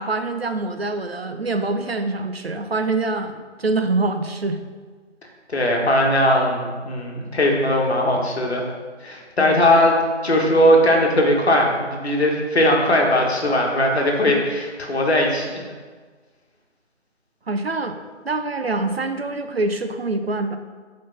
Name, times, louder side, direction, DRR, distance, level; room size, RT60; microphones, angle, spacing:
voice 1, 0.0-4.6 9.4-9.6 17.5-20.6, right 2 dB, 55° right, 8 dB, 0.5 m, -25 dB
voice 2, 5.5-8.7 9.0-10.0 10.2-15.7, left 1 dB, 60° left, 0 dB, 1.4 m, -19 dB
4.6 x 4.6 x 5.7 m, 1.5 s
figure-of-eight pair, 175°, 36 cm